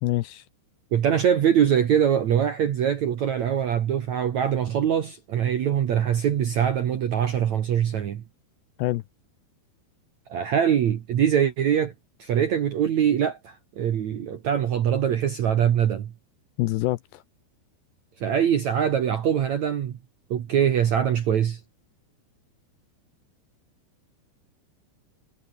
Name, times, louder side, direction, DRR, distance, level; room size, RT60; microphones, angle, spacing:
voice 1, 0.0-0.4 8.8-9.0 16.6-17.2, left 18 dB, 75° left, 2.7 m, -26 dB
voice 2, 0.9-8.2 10.3-11.9 12.2-16.1 18.2-20.0 20.3-21.6, right 9 dB, 65° right, 1.8 m, -23 dB
omnidirectional pair, 5.5 m